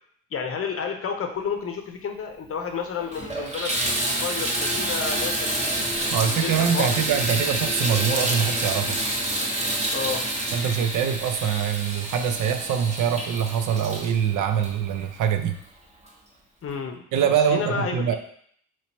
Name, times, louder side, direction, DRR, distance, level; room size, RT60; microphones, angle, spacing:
voice 1, 0.3-3.8 4.2-6.9 9.9-10.3 16.6-18.2, left 6 dB, 40° left, 5 dB, 0.7 m, -31 dB
Water tap faucet / Bathtub (filling or washing), 2.4-2.5 3.0-15.4 16.1-16.2 16.7-16.8, right 1 dB, 20° right, 1.0 m, -28 dB
voice 2, 6.1-9.0 10.5-15.6 17.1-18.2, right 8 dB, 60° right, 7 dB, 0.5 m, -24 dB
4.4 x 2.9 x 2.9 m, 0.64 s
hypercardioid pair, 60°, 36 cm